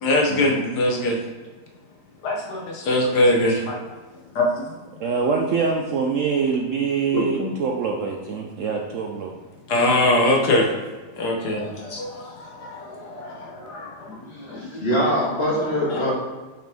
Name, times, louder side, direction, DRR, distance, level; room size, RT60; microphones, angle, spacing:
voice 1, 0.0-1.2 2.2-3.8 4.3-4.8 5.3-5.4 7.1-7.5 9.7-10.7 11.2-14.8 15.8-16.1, left 1 dB, 70° left, 0 dB, 1.5 m, -23 dB
voice 2, 5.0-9.3, right 5 dB, 65° right, 1 dB, 0.8 m, -24 dB
voice 3, 14.3-16.1, equal, 40° left, -5 dB, 1.9 m, -23 dB
6.3 x 5.8 x 3.5 m, 1.3 s
omnidirectional pair, 1.8 m